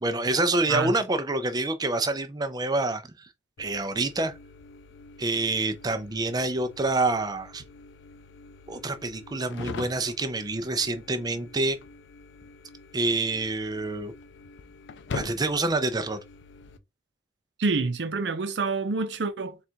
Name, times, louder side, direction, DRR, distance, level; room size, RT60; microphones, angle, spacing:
voice 1, 0.0-3.0 3.6-4.3 5.2-7.6 8.7-11.8 12.9-14.1 15.1-16.2, right 2 dB, 20° right, 0.5 m, -27 dB
sound 1, 3.6-16.8, left 4 dB, 75° left, 0.4 m, -44 dB
voice 2, 17.6-19.6, right 4 dB, 70° right, 0.6 m, -27 dB
3.9 x 2.4 x 4.4 m
head